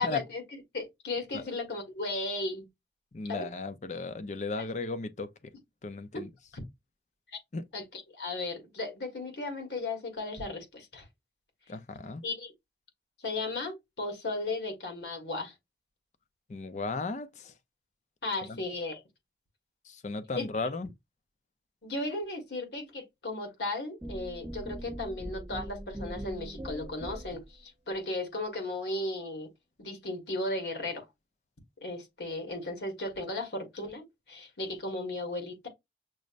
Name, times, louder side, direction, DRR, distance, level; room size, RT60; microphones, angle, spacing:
voice 1, 0.0-2.7 3.3-3.5 6.1-6.2 6.5-6.6 7.7-11.0 12.2-12.5 13.2-15.5 18.2-19.0 20.3-20.5 21.8-29.5 29.8-31.0 31.8-35.7, left 2 dB, 75° left, 1.4 m, -35 dB
voice 2, 3.1-5.3 5.8-6.3 7.5-7.6 11.7-12.2 16.5-17.5 18.5-18.6 19.9-20.9, left 3 dB, 40° left, 0.5 m, -35 dB
sound 1, 24.0-27.5, right 1 dB, 10° right, 0.6 m, -41 dB
6.2 x 2.1 x 2.4 m
head